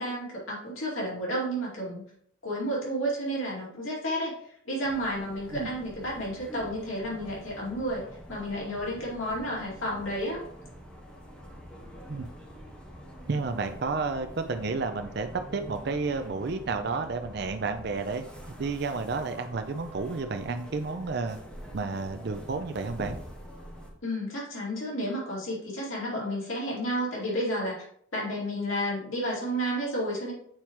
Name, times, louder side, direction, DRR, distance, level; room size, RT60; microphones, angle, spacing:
voice 1, 0.0-2.0 2.4-4.3 4.6-8.0 8.3-10.4 24.0-27.8 28.1-30.3, equal, 80° left, -4 dB, 2.5 m, -31 dB
sound 1, 4.8-23.9, equal, 5° left, 1.4 m, -45 dB
voice 2, 13.3-18.2 18.6-21.4 21.7-23.2, right 4 dB, 55° right, 7 dB, 0.5 m, -31 dB
8.8 x 4.5 x 3.0 m, 0.64 s
head